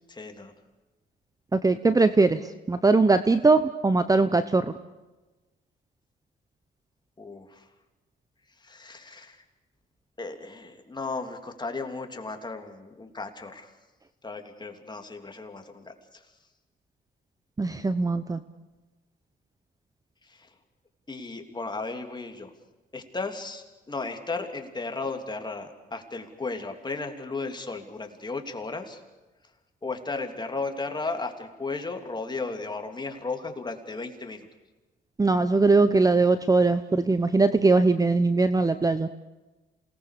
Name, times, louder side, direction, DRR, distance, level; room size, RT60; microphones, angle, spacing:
voice 1, 0.1-0.5 7.2-7.6 8.6-9.4 10.2-13.7 14.2-16.2 20.2-20.5 21.1-22.5 22.9-29.0 29.8-34.5, left 3 dB, 20° left, 5 dB, 3.2 m, -35 dB
voice 2, 1.5-2.4 2.7-4.7 17.6-18.4 35.2-39.1, right 3 dB, 15° right, 12 dB, 0.9 m, -21 dB
28.0 x 19.5 x 6.8 m, 1.1 s
cardioid pair, 90°, 20 cm